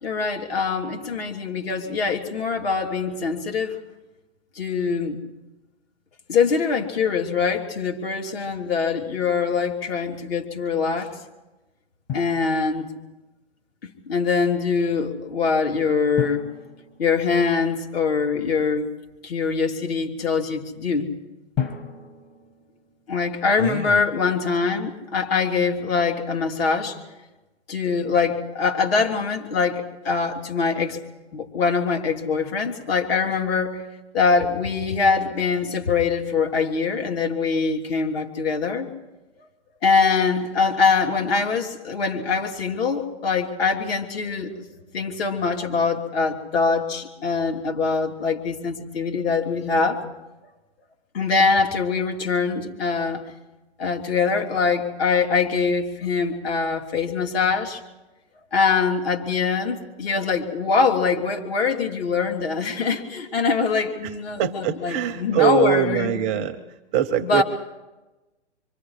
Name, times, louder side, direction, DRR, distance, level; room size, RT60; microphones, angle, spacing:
voice 1, 0.0-3.8 4.5-5.2 6.3-11.1 12.1-12.9 13.8-16.5 17.0-18.9 19.2-21.2 23.1-27.0 27.7-31.0 31.3-33.8 34.1-38.9 39.8-44.5 44.9-50.0 51.1-53.2 53.8-57.8 58.5-66.5 67.2-67.4, left 5 dB, 55° left, 2 dB, 3.3 m, -23 dB
Drum, 12.1-13.2 16.2-18.0 21.5-23.5, left 8 dB, 25° left, 1.7 m, -34 dB
voice 2, 23.6-24.0 64.0-67.4, right 9 dB, 20° right, 7 dB, 0.6 m, -24 dB
26.5 x 24.0 x 4.9 m, 1.1 s
hypercardioid pair, 145°, 36 cm